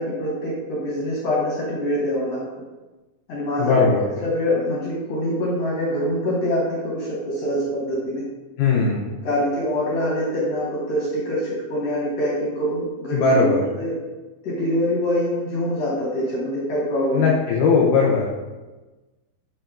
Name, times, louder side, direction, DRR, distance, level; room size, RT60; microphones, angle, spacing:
voice 1, 0.0-2.4 3.3-3.8 4.2-8.2 9.2-13.9 14.4-17.3, equal, 70° left, -7 dB, 1.5 m, -24 dB
voice 2, 3.6-4.0 8.6-9.1 13.1-13.6 17.1-18.3, left 4 dB, 90° left, -2 dB, 1.8 m, -18 dB
7.3 x 2.8 x 2.4 m, 1.2 s
omnidirectional pair, 4.3 m